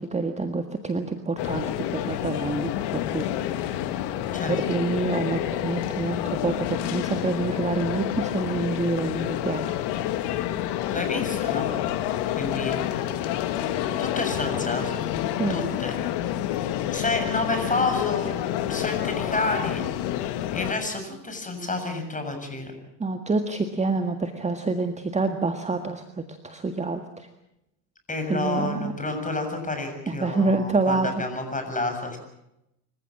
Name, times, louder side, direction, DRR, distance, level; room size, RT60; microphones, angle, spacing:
voice 1, 0.0-3.3 3.5-3.8 4.5-9.8 15.3-15.6 23.0-27.3 28.3-28.9 30.1-31.2, right 3 dB, 15° right, 7 dB, 1.8 m, -27 dB
sound 1, 1.4-20.7, left 12 dB, 55° left, 2.2 m, -28 dB
voice 2, 10.9-11.7 12.4-12.8 14.0-15.1 15.5-15.9 16.9-18.3 18.7-19.8 20.5-22.7 28.1-32.2, left 2 dB, 15° left, 5 dB, 7.3 m, -29 dB
26.0 x 15.0 x 8.6 m, 0.85 s
hypercardioid pair, 85°, 47 cm